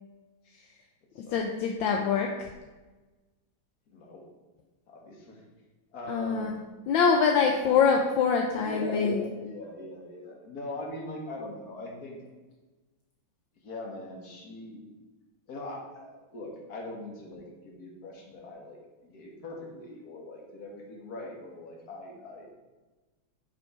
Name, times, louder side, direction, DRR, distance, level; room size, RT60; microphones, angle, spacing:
voice 1, 1.3-2.5 6.1-6.5 6.9-9.2, left 6 dB, 75° left, 3 dB, 1.4 m, -24 dB
voice 2, 3.9-4.3 4.9-5.4 5.9-6.6 7.6-8.0 8.6-12.2 13.6-14.8 15.5-22.6, left 2 dB, 50° left, 0 dB, 1.8 m, -41 dB
7.3 x 5.2 x 4.7 m, 1.2 s
omnidirectional pair, 2.2 m